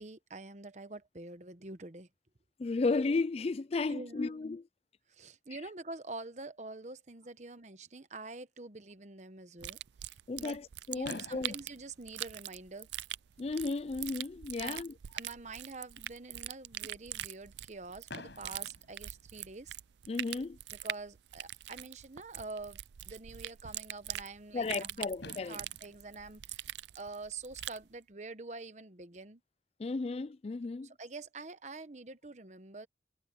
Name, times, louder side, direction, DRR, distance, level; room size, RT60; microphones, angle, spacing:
voice 1, 0.0-2.1 3.9-4.4 5.1-10.6 10.9-12.9 14.6-14.8 15.1-19.7 20.8-29.4 31.0-32.9, right 3 dB, 40° right, 1.0 m, -46 dB
voice 2, 2.6-4.7 10.3-11.6 13.4-14.9 20.1-20.6 24.5-25.6 29.8-30.9, left 3 dB, 35° left, 0.4 m, -34 dB
sound 1, 9.6-27.8, right 13 dB, 80° right, 0.4 m, -43 dB
Fireworks, 11.0-13.1 13.9-14.0 14.2-14.4 14.7-14.8 18.1-19.9 21.6-21.7 24.7-24.8 25.2-27.5, left 2 dB, 85° left, 5.2 m, -51 dB
head